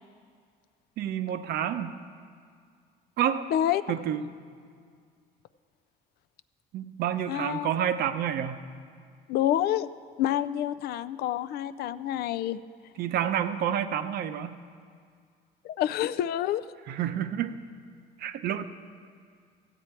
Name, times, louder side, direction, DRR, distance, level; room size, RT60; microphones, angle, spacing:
voice 1, 1.0-1.9 3.2-3.5 3.9-4.3 6.7-8.7 13.0-14.6 16.9-17.6 18.2-18.6, right 9 dB, 70° right, 10 dB, 0.6 m, -29 dB
voice 2, 3.5-3.8 7.3-7.7 9.3-9.9 10.2-12.6 15.6-16.6, left 11 dB, 70° left, 14 dB, 0.4 m, -28 dB
14.0 x 8.3 x 4.4 m, 2.2 s
cardioid pair, 110°, 17 cm